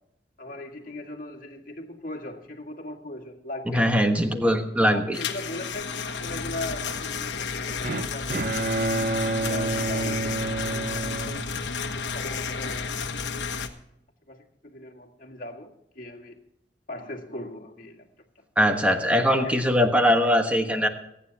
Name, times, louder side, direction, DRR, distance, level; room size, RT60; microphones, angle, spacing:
voice 1, 0.4-3.9 4.8-8.7 9.4-11.0 11.9-12.8 13.5-13.7 14.3-16.4 16.9-18.1 19.2-19.5, left 1 dB, 50° left, 3 dB, 1.9 m, -39 dB
voice 2, 3.7-5.2 18.6-20.9, equal, 10° right, 5 dB, 1.3 m, -21 dB
sound 1, 5.1-13.7, left 5 dB, 90° left, 1.2 m, -31 dB
Bowed string instrument, 7.8-12.1, right 3 dB, 50° right, 0.6 m, -29 dB
27.0 x 9.6 x 2.9 m, 0.81 s
head